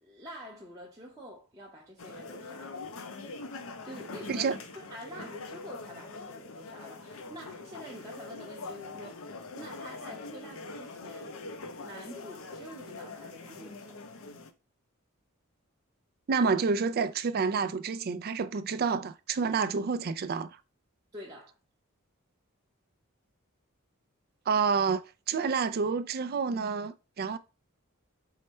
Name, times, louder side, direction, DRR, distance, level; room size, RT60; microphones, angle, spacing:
voice 1, 0.0-2.8 3.8-11.3 11.7-14.0 21.1-21.5, equal, 15° right, 0.8 m, -47 dB
sound 1, 2.0-14.5, left 3 dB, 70° left, 0.6 m, -43 dB
voice 2, 16.3-20.5 24.5-27.4, right 5 dB, 45° right, 0.4 m, -29 dB
4.7 x 2.2 x 4.1 m
head